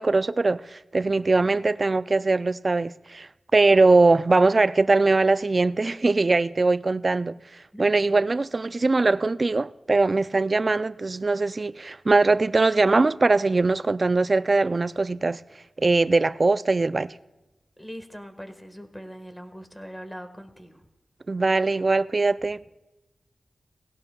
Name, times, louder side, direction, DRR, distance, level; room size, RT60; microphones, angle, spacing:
voice 1, 0.0-15.4 15.8-17.2 21.3-22.6, right 3 dB, 45° right, 0.3 m, -21 dB
voice 2, 17.8-20.9, equal, 10° left, 1.4 m, -41 dB
18.5 x 17.0 x 2.3 m
wide cardioid pair, 75°, 0 cm